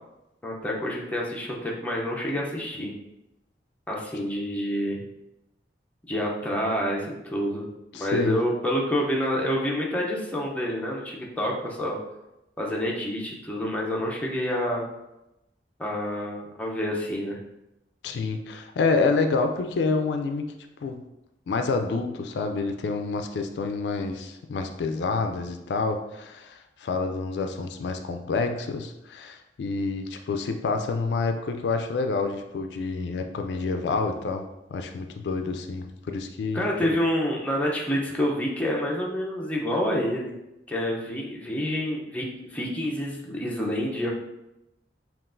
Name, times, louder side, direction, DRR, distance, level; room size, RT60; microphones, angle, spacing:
voice 1, 0.4-2.9 3.9-5.0 6.1-7.7 8.0-12.0 12.6-14.9 15.8-17.4 36.5-40.3 40.7-44.1, equal, 10° left, -3 dB, 0.6 m, -28 dB
voice 2, 7.9-8.4 18.0-20.5 20.8-21.0 21.5-36.6, left 4 dB, 75° left, 6 dB, 0.3 m, -28 dB
5.6 x 2.4 x 2.5 m, 0.92 s
head